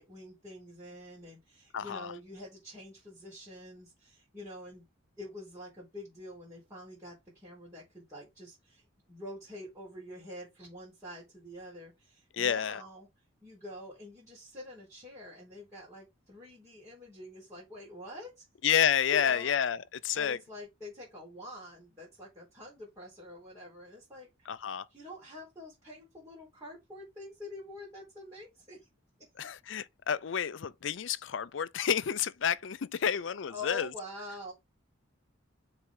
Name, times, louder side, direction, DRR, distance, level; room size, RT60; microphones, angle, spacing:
voice 1, 0.0-4.8 5.2-13.1 13.4-18.4 19.1-19.5 20.1-24.6 24.9-28.8 33.5-34.5, left 1 dB, 15° right, 4.2 m, -46 dB
voice 2, 1.7-2.1 12.3-12.8 18.6-20.4 24.5-24.8 29.4-33.9, left 8 dB, 65° left, 0.5 m, -30 dB
7.1 x 4.3 x 3.8 m
head